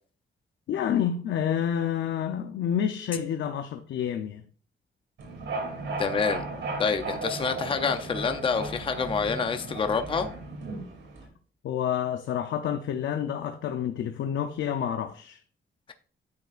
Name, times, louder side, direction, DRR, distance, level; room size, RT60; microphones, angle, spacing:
voice 1, 0.7-4.4 11.6-15.4, left 9 dB, 85° left, 0.6 m, -29 dB
sound 1, 5.2-11.3, right 2 dB, 80° right, 2.6 m, -35 dB
voice 2, 6.0-6.4 6.8-10.3, left 5 dB, 25° left, 0.5 m, -27 dB
9.5 x 6.9 x 2.4 m
wide cardioid pair, 135°, 19 cm